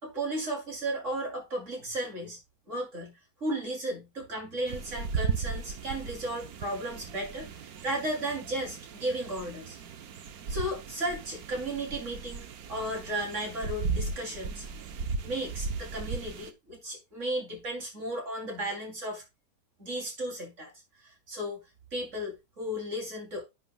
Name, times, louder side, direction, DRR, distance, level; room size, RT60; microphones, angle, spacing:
voice 1, 0.0-2.4 2.7-3.1 3.4-9.8 10.5-14.6 15.2-19.2 19.8-20.7 21.0-21.6 21.9-23.4, right 1 dB, 45° right, 3.5 m, -34 dB
sound 1, 4.7-16.5, right 5 dB, 65° right, 1.3 m, -36 dB
11.5 x 8.0 x 2.3 m
omnidirectional pair, 1.8 m